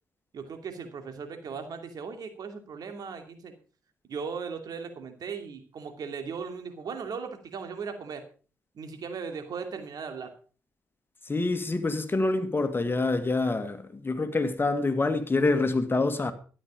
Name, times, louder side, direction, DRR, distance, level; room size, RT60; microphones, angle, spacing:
voice 1, 0.3-3.5 4.1-8.2 8.7-10.3, right 5 dB, 60° right, 2.7 m, -37 dB
voice 2, 11.3-16.3, left 3 dB, 30° left, 2.0 m, -26 dB
13.5 x 10.5 x 5.2 m
hypercardioid pair, 40°, 7 cm